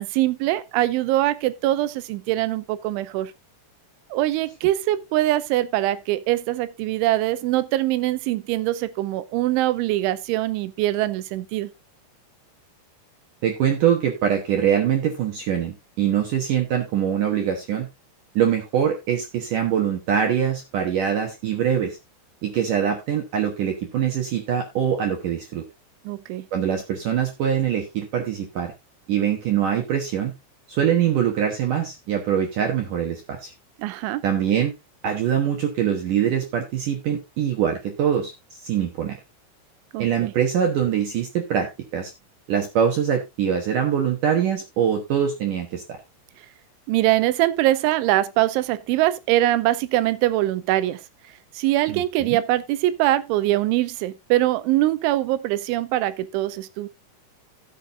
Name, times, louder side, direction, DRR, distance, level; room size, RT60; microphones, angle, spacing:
voice 1, 0.0-3.3 4.1-11.7 26.1-26.5 33.8-34.2 39.9-40.3 46.9-51.0 51.5-56.9, right 15 dB, 85° right, 3.2 m, -23 dB
voice 2, 13.4-17.9 18.4-22.0 22.4-25.6 26.5-28.7 29.1-30.3 30.7-33.5 34.2-34.7 35.0-39.2 40.0-42.1 42.5-46.0 51.9-52.4, right 9 dB, 65° right, 2.1 m, -23 dB
16.5 x 7.3 x 2.5 m
omnidirectional pair, 5.4 m